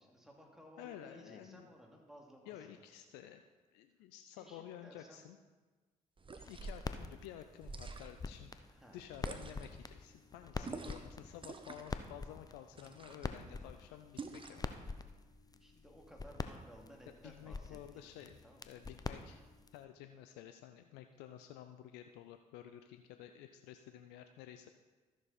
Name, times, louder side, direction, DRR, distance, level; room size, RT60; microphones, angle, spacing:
voice 1, 0.0-2.8 4.4-5.2 8.7-9.0 10.5-11.0 15.4-17.8 18.1-18.8, equal, 5° right, -1 dB, 2.6 m, -58 dB
voice 2, 0.8-1.7 2.5-3.4 3.7-5.4 6.3-8.6 8.9-14.7 17.2-18.4 18.7-19.4 19.7-24.7, left 11 dB, 75° left, 7 dB, 0.5 m, -52 dB
sound 1, 6.2-6.9 7.6-8.3 9.2-9.8 10.6-11.1 11.4-12.0 12.7-13.3 14.2-14.7, right 3 dB, 30° right, 1.0 m, -47 dB
sound 2, 6.4-19.8, left 3 dB, 20° left, 0.7 m, -46 dB
13.5 x 6.6 x 4.2 m, 1.3 s
hypercardioid pair, 45°, 17 cm